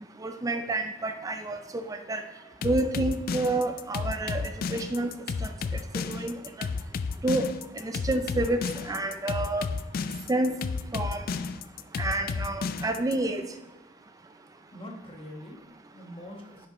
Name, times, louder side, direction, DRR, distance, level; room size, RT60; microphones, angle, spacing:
voice 1, 0.2-2.2 2.6-5.1 5.4-5.5 5.9-6.7 7.2-7.5 7.7-9.7 10.3-10.6 10.9-11.2 12.0-13.4, right 2 dB, 20° right, 7 dB, 0.4 m, -29 dB
sound 1, 2.6-13.1, left 5 dB, 50° left, 0.3 m, -32 dB
voice 2, 14.7-16.7, left 1 dB, 30° left, 0 dB, 1.3 m, -44 dB
10.0 x 5.4 x 2.9 m, 1.1 s
head